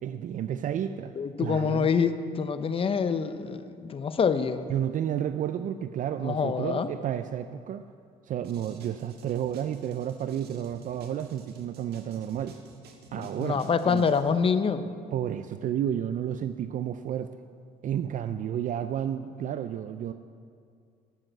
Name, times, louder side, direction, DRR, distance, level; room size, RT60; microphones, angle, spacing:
voice 1, 0.0-1.1 1.4-1.9 4.7-7.8 8.3-12.6 13.1-14.0 15.1-17.3 17.8-20.1, right 10 dB, 50° right, 11 dB, 0.4 m, -31 dB
voice 2, 1.2-4.7 6.2-6.9 13.1-14.9, left 6 dB, 35° left, 11 dB, 0.7 m, -26 dB
sound 1, 8.4-14.3, right 3 dB, 70° right, 1.6 m, -52 dB
12.5 x 7.6 x 7.7 m, 2.2 s
cardioid pair, 110°, 17 cm